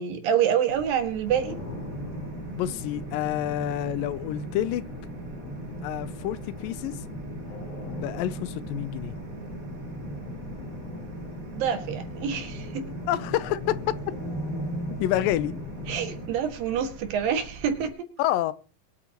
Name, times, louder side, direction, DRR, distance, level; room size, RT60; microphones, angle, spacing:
voice 1, 0.0-1.6 11.5-12.9 15.9-18.1, right 8 dB, 85° right, 3.4 m, -27 dB
sound 1, 0.7-17.9, right 3 dB, 60° right, 0.9 m, -45 dB
sound 2, 1.3-16.3, equal, 65° left, 4.6 m, -37 dB
voice 2, 2.6-4.9 5.8-7.0 7.8-9.1 13.1-13.9 15.0-15.6 18.2-18.5, left 13 dB, 85° left, 2.4 m, -28 dB
22.0 x 8.7 x 2.9 m
omnidirectional pair, 3.9 m